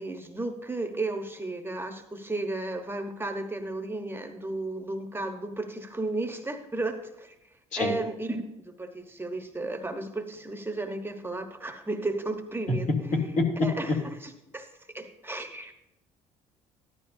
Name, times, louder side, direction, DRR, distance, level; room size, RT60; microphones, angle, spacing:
voice 1, 0.0-7.3 7.8-12.9 13.6-14.7 14.9-15.7, right 2 dB, 15° right, 6 dB, 1.1 m, -34 dB
voice 2, 13.1-14.0, left 3 dB, 55° left, 0 dB, 2.8 m, -26 dB
13.5 x 11.5 x 2.7 m, 0.89 s
supercardioid pair, 65°, 15 cm